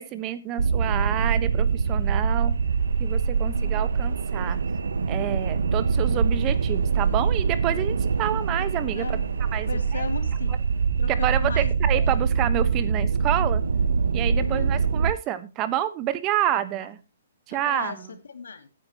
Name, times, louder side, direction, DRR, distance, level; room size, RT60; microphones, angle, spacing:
voice 1, 0.0-2.5 3.0-4.6 5.1-9.2 9.5-10.0 10.5-10.6 11.2-13.6 14.1-17.0 17.5-17.9, right 12 dB, 25° right, 13 dB, 1.2 m, -28 dB
sound 1, 0.6-15.1, right 5 dB, 85° right, 0.8 m, -24 dB
voice 2, 3.3-4.0 8.9-10.6 11.0-12.4 14.3-14.7 16.5-16.6 17.5-18.7, left 5 dB, 85° left, 8 dB, 2.4 m, -37 dB
16.0 x 9.7 x 3.0 m, 0.26 s
hypercardioid pair, 145°, 0 cm